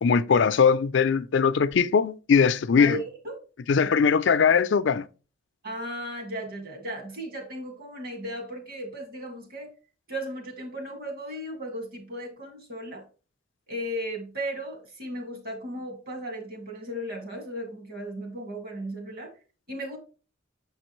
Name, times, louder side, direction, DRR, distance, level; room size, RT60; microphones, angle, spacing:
voice 1, 0.0-3.0 3.7-5.0, left 6 dB, 65° left, 0.4 m, -21 dB
voice 2, 2.8-3.4 3.8-4.0 5.6-9.7 10.1-13.0 13.7-19.3 19.7-20.0, equal, 50° right, 2.1 m, -36 dB
7.0 x 5.2 x 3.0 m
head